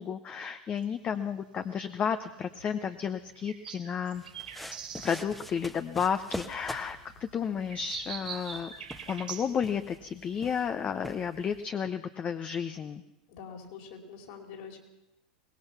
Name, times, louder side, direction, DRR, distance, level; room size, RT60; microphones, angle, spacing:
voice 1, 0.0-4.2 5.0-8.7 9.1-13.0, left 7 dB, 30° left, 9 dB, 0.9 m, -32 dB
sound 1, 0.8-9.5, right 7 dB, 85° right, 3.2 m, -45 dB
sound 2, 4.1-11.6, equal, 5° left, 1.2 m, -45 dB
voice 2, 13.3-14.8, left 6 dB, 60° left, 2 dB, 4.5 m, -45 dB
23.5 x 19.0 x 5.9 m, 0.93 s
hypercardioid pair, 90°, 4 cm